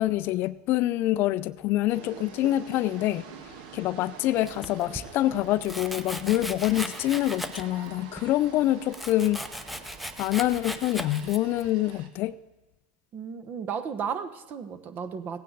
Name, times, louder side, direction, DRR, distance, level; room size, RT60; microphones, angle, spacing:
voice 1, 0.0-3.2 3.7-9.4 10.2-12.3, left 15 dB, 50° left, 16 dB, 0.4 m, -26 dB
sound 1, 1.9-12.1, right 6 dB, 65° right, 1.4 m, -46 dB
Domestic sounds home sounds, 4.5-5.1 5.6-7.9 8.2-11.7, equal, ahead, 0.8 m, -38 dB
voice 2, 13.1-15.4, right 7 dB, 40° right, 10 dB, 1.0 m, -34 dB
16.5 x 9.2 x 4.0 m, 1.1 s
hypercardioid pair, 100°, 5 cm